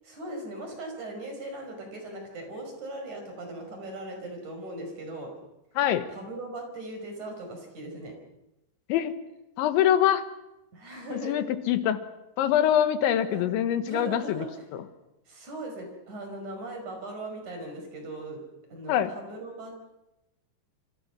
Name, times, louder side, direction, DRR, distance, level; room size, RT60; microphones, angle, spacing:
voice 1, 0.0-5.3 6.1-8.1 10.7-11.4 13.2-13.6 13.9-14.5 15.3-18.4 18.7-19.8, right 1 dB, 40° right, 3 dB, 6.6 m, -39 dB
voice 2, 5.8-6.1 8.9-9.1 9.6-10.2 11.1-12.0 12.4-14.5 18.9-19.1, left 10 dB, 80° left, 10 dB, 3.5 m, -24 dB
27.0 x 26.5 x 6.1 m, 0.93 s
omnidirectional pair, 5.3 m